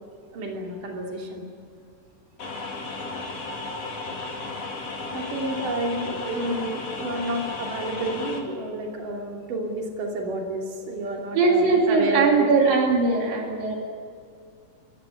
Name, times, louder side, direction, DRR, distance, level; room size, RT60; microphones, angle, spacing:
voice 1, 0.3-1.4 5.1-12.5, right 1 dB, 70° right, 0 dB, 4.4 m, -30 dB
sound 1, 2.4-8.4, left 3 dB, 50° left, 3.8 m, -34 dB
voice 2, 11.3-13.7, right 4 dB, 90° right, 0 dB, 4.6 m, -20 dB
29.0 x 15.0 x 9.9 m, 2.4 s
omnidirectional pair, 3.9 m